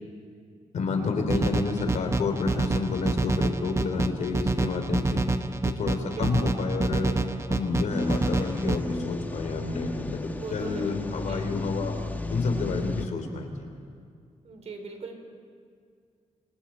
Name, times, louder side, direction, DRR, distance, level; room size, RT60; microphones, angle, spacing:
voice 1, 0.7-5.3 5.6-7.2 7.5-11.9 12.3-13.7, left 4 dB, 80° left, 4 dB, 3.4 m, -29 dB
sound 1, 1.3-8.8, right 3 dB, 25° right, 1.0 m, -27 dB
voice 2, 6.0-6.5 10.2-10.9 11.3-11.5 14.4-15.2, right 4 dB, 65° right, 4 dB, 3.7 m, -41 dB
sound 2, 7.9-13.1, left 2 dB, 15° left, 1.2 m, -34 dB
29.0 x 25.0 x 4.5 m, 2.2 s
cardioid pair, 115°, 12 cm